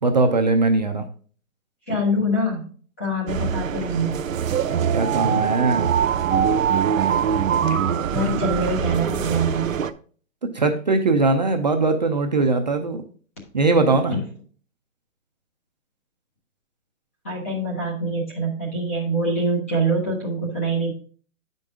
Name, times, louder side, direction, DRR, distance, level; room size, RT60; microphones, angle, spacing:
voice 1, 0.0-1.0 4.9-5.9 10.4-13.0 13.5-14.2, right 3 dB, 35° right, 5 dB, 0.5 m, -20 dB
voice 2, 1.9-2.7 3.0-4.2 7.7-7.8 8.1-9.8 14.1-14.2 17.2-20.9, right 1 dB, 10° left, -3 dB, 0.6 m, -25 dB
sound 1, 3.3-9.9, right 8 dB, 70° right, 0.7 m, -22 dB
8.5 x 5.3 x 3.6 m, 0.42 s
hypercardioid pair, 165°, 41 cm